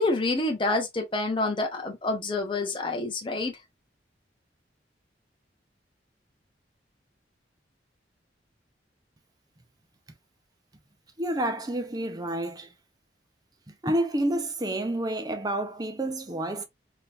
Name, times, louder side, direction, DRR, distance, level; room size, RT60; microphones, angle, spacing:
voice 1, 0.0-3.5, left 2 dB, 30° left, 0.7 m, -27 dB
voice 2, 11.2-12.7 13.7-16.6, right 1 dB, 20° right, 0.6 m, -29 dB
3.6 x 2.9 x 2.4 m
head